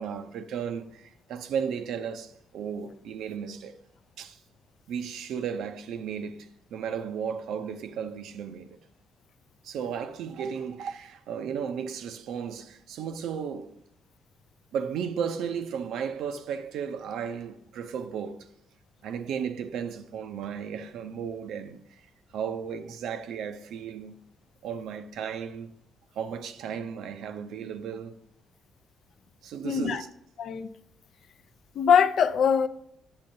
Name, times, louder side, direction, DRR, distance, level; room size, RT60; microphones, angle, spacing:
voice 1, 0.0-3.8 4.2-4.4 4.9-8.8 9.6-13.7 14.7-18.5 19.0-22.1 22.3-24.2 24.6-25.7 26.2-28.2 29.4-30.1, right 7 dB, 80° right, 0.6 m, -34 dB
voice 2, 29.6-30.0 30.4-30.7 31.8-32.7, left 7 dB, 65° left, 0.5 m, -22 dB
8.8 x 7.4 x 2.7 m
cardioid pair, 90°, 0 cm